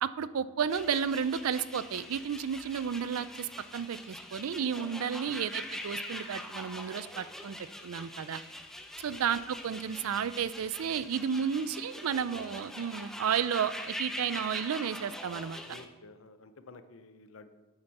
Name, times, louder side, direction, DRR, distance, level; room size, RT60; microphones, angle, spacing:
voice 1, 0.0-7.6 7.8-8.4 9.0-15.6, right 7 dB, 85° right, 16 dB, 0.4 m, -32 dB
sound 1, 0.7-15.9, left 1 dB, ahead, 0.6 m, -43 dB
voice 2, 15.6-17.5, left 3 dB, 75° left, 10 dB, 0.7 m, -52 dB
8.8 x 8.0 x 4.2 m, 1.3 s
head